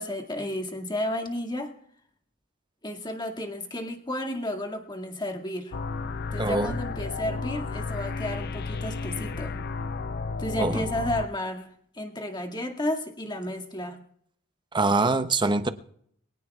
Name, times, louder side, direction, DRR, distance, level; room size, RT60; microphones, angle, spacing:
voice 1, 0.0-1.7 2.8-5.8 6.3-9.6 10.4-11.7 11.9-14.0, left 1 dB, 20° left, 2.0 m, -32 dB
sound 1, 5.7-11.3, left 4 dB, 50° left, 0.5 m, -32 dB
voice 2, 6.4-6.8 10.6-10.8 14.7-15.7, right 3 dB, 20° right, 0.7 m, -24 dB
24.0 x 17.5 x 2.4 m
head